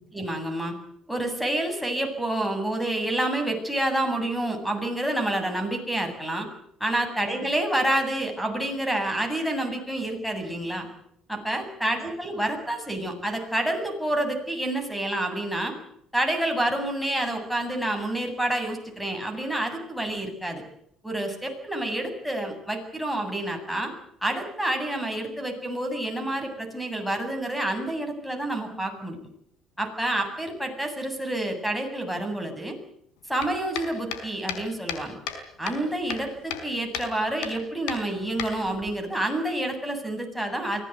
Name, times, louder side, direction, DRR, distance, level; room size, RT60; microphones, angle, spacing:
voice 1, 0.1-0.7 1.1-6.5 6.8-10.9 11.3-15.8 16.1-20.6 21.0-23.9 24.2-29.2 29.8-32.8 33.3-35.2 35.6-40.8, right 1 dB, ahead, 7 dB, 7.9 m, -28 dB
sound 1, 33.4-35.4 35.7-36.7 36.9-37.1 37.4-37.6 37.9-38.9, left 8 dB, 85° left, 4.7 m, -34 dB
24.0 x 18.0 x 9.5 m, 0.72 s
supercardioid pair, 85°, 0 cm